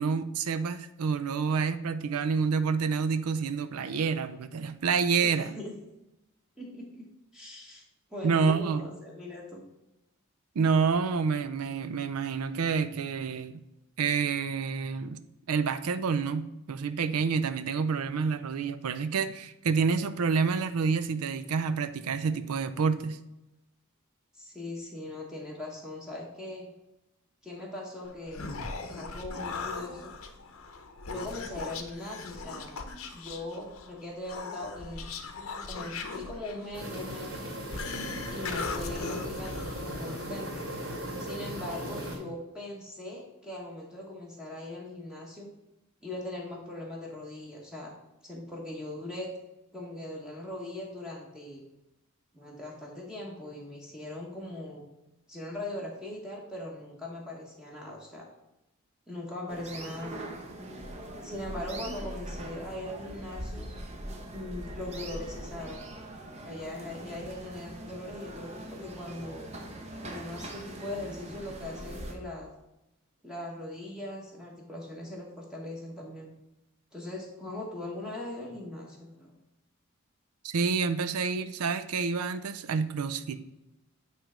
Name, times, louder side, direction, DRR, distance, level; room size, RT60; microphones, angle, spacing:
voice 1, 0.0-5.6 8.2-8.9 10.6-13.6 14.0-15.2 15.5-23.2 80.4-83.4, right 5 dB, 90° right, 12 dB, 0.5 m, -28 dB
voice 2, 5.2-5.7 6.6-7.0 7.3-7.8 8.1-9.7 24.3-26.7 27.4-28.5 28.9-30.1 31.0-32.7 33.1-35.1 35.7-37.5 38.3-40.6 41.2-45.5 46.0-47.9 48.2-49.3 49.7-51.6 52.3-54.8 55.3-58.3 59.1-60.1 61.2-63.7 64.3-65.9 66.4-69.5 70.0-72.5 73.2-76.3 76.9-79.3, left 1 dB, 5° right, -3 dB, 1.1 m, -40 dB
Human voice, 28.1-40.3, left 4 dB, 70° left, 0.8 m, -39 dB
sound 1, 36.7-42.2, equal, 65° right, 2.4 m, -37 dB
sound 2, 59.5-72.1, right 1 dB, 30° right, 0.9 m, -42 dB
9.0 x 3.3 x 5.0 m, 0.95 s
head